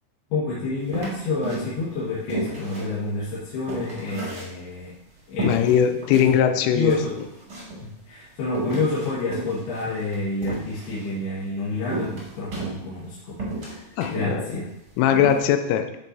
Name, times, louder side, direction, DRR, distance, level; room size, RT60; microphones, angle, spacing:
voice 1, 0.3-4.9 5.3-5.5 6.1-6.3 6.7-7.1 7.8-14.6, left 3 dB, 65° left, -8 dB, 3.2 m, -29 dB
sound 1, 0.9-1.9 2.3-4.9 5.4-6.3 6.6-6.7 6.9-7.8 8.5-11.1 11.9-13.1 13.4-14.3 14.7-14.8 15.1-15.4, right 2 dB, 30° right, 2.0 m, -32 dB
voice 2, 5.4-7.0 14.0-14.5 15.0-16.0, left 9 dB, 85° left, 8 dB, 3.1 m, -20 dB
11.5 x 6.7 x 2.7 m, 0.86 s
omnidirectional pair, 5.6 m